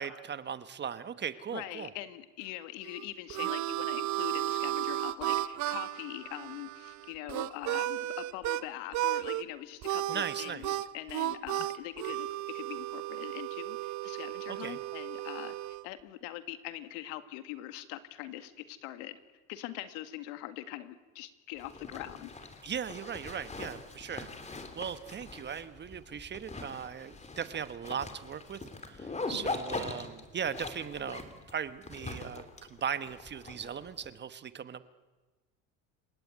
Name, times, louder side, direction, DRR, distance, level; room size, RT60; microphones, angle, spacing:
voice 1, 0.0-1.9 10.1-10.8 14.5-14.8 22.6-28.6 28.9-31.2 31.5-32.4 32.7-34.9, right 7 dB, 30° right, 13 dB, 1.3 m, -38 dB
voice 2, 1.5-15.5 15.8-19.2 19.5-22.6 29.3-29.5, left 14 dB, 85° left, 11 dB, 2.1 m, -43 dB
Harmonica, 2.8-8.6 8.9-9.4 9.8-15.8, right 15 dB, 50° right, 1.1 m, -34 dB
Zipper (clothing), 21.6-34.1, left 3 dB, 20° left, 3.2 m, -42 dB
29.5 x 17.5 x 9.6 m, 1.2 s
supercardioid pair, 120°, 37 cm